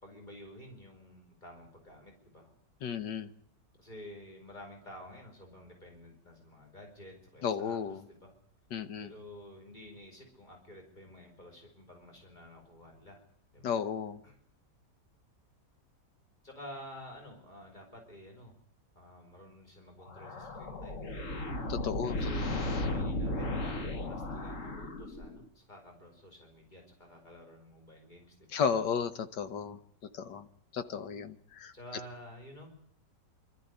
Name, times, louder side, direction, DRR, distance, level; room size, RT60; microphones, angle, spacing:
voice 1, 0.0-2.5 3.8-7.8 8.1-8.3 9.0-13.2 13.5-13.7 14.2-14.4 16.4-18.5 19.0-21.3 22.2-28.6 31.7-32.8, left 1 dB, 25° left, 1 dB, 5.1 m, -51 dB
voice 2, 2.8-3.3 7.4-8.0 8.7-9.1 13.6-14.2 21.7-22.6 28.5-29.8 30.1-30.5 30.7-31.7, left 7 dB, 80° left, 11 dB, 1.9 m, -34 dB
sound 1, 20.0-25.5, left 1 dB, 45° left, 2.0 m, -35 dB
25.0 x 13.5 x 9.6 m, 0.67 s
omnidirectional pair, 1.8 m